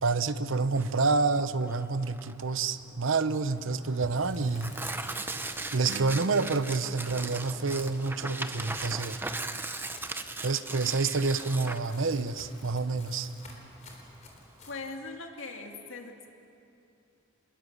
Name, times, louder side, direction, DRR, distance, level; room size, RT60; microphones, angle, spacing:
voice 1, 0.0-4.9 5.7-9.2 10.4-13.3, right 4 dB, 75° right, 13 dB, 0.8 m, -28 dB
Tearing, 0.7-14.9, right 2 dB, 10° right, 0.8 m, -39 dB
sound 1, 4.0-14.8, left 2 dB, 35° left, 3.7 m, -52 dB
Acoustic guitar / Strum, 5.9-9.1, right 3 dB, 55° right, 0.5 m, -46 dB
voice 2, 14.7-16.3, left 3 dB, 75° left, 3 dB, 2.3 m, -40 dB
26.0 x 21.5 x 6.8 m, 2.8 s
head